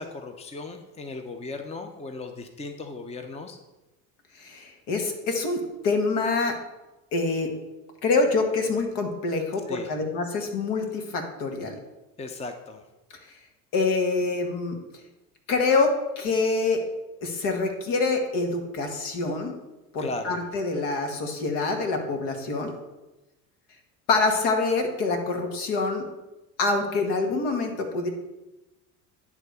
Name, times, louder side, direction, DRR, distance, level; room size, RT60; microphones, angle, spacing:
voice 1, 0.0-3.6 9.7-9.9 12.2-12.8 20.0-20.4, left 3 dB, 15° left, 6 dB, 0.8 m, -36 dB
voice 2, 4.4-6.6 7.1-7.5 8.0-11.8 13.7-14.8 15.5-16.8 17.2-19.5 19.9-22.7 24.1-26.1 26.6-28.1, left 3 dB, 60° left, 4 dB, 1.9 m, -26 dB
10.5 x 3.6 x 6.8 m, 1.0 s
hypercardioid pair, 75°, 46 cm